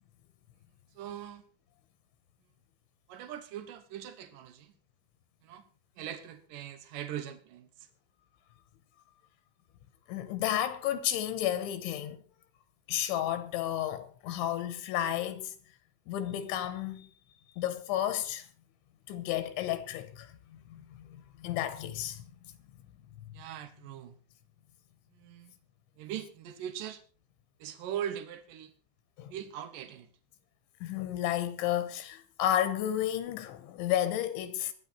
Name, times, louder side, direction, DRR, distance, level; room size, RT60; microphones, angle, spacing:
voice 1, 0.9-1.4 3.1-4.7 5.4-5.6 6.0-7.9 23.3-24.2 25.1-25.5 26.0-27.0 27.6-28.7 29.3-30.1, right 10 dB, 90° right, 1.9 m, -41 dB
voice 2, 10.1-12.2 12.9-15.5 16.1-17.1 17.6-18.5 19.1-20.3 20.7-22.3 29.2-29.3 30.8-34.7, left 11 dB, 75° left, 3.2 m, -32 dB
22.5 x 9.9 x 4.3 m
omnidirectional pair, 5.7 m